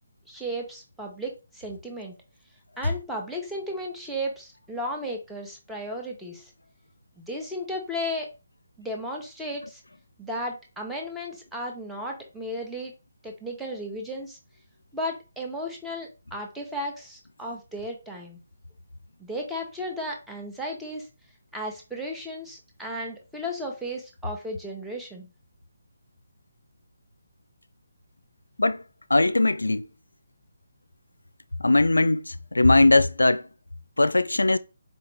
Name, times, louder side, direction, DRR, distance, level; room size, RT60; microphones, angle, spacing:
voice 1, 0.3-2.1 2.8-6.5 7.2-8.3 8.8-9.8 10.2-12.9 13.2-14.4 14.9-18.4 19.2-21.1 21.5-25.3, equal, 5° right, 0.7 m, -34 dB
voice 2, 29.1-29.8 31.6-33.5 34.0-34.6, left 2 dB, 75° left, 0.3 m, -20 dB
4.3 x 2.9 x 3.2 m
figure-of-eight pair, 145°, 0 cm